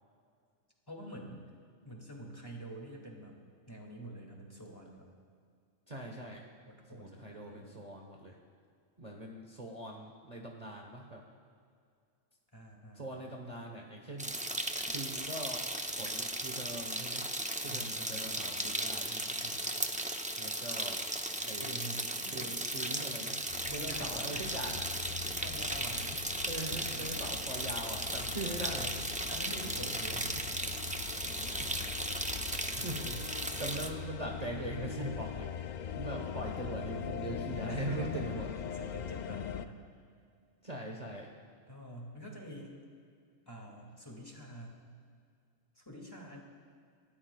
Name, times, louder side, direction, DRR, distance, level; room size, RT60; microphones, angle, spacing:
voice 1, 0.9-1.4 1.8-3.4 3.7-5.1 6.7-7.7 12.5-13.3 17.7-18.5 19.0-20.0 21.4-22.5 23.6-24.4 25.0-26.3 26.7-27.3 28.2-28.4 29.1-30.5 31.0-31.4 32.7-33.3 36.1-37.1 37.7-38.3 38.7-39.8 41.7-42.7 43.5-44.8 45.8-46.4, right 1 dB, 20° left, -1 dB, 2.3 m, -47 dB
voice 2, 5.9-6.4 6.9-8.4 9.0-11.2 12.9-14.3 14.8-15.7 15.9-17.3 17.6-19.1 20.4-21.0 21.4-21.7 22.3-23.4 23.7-24.9 26.4-29.1 31.4-33.0 33.6-38.5 40.6-41.3, right 1 dB, 35° right, 0 dB, 1.2 m, -41 dB
sound 1, 14.2-33.9, right 1 dB, 10° right, 0.4 m, -36 dB
sound 2, 23.5-39.7, left 8 dB, 70° left, 0.4 m, -42 dB
Insect, 25.4-33.0, right 2 dB, 80° right, 2.2 m, -56 dB
28.5 x 13.5 x 2.3 m, 2.3 s
omnidirectional pair, 1.3 m